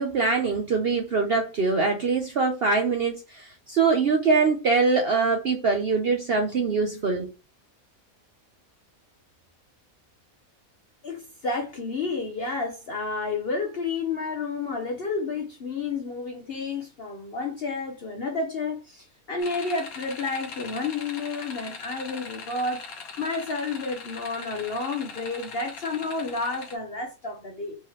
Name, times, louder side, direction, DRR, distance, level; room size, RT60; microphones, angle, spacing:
voice 1, 0.0-7.3, right 4 dB, 55° right, 0.8 m, -23 dB
voice 2, 11.0-27.8, left 3 dB, 50° left, 0.9 m, -31 dB
sound 1, 19.4-26.7, left 5 dB, 75° left, 1.4 m, -41 dB
4.7 x 3.0 x 3.1 m
omnidirectional pair, 1.5 m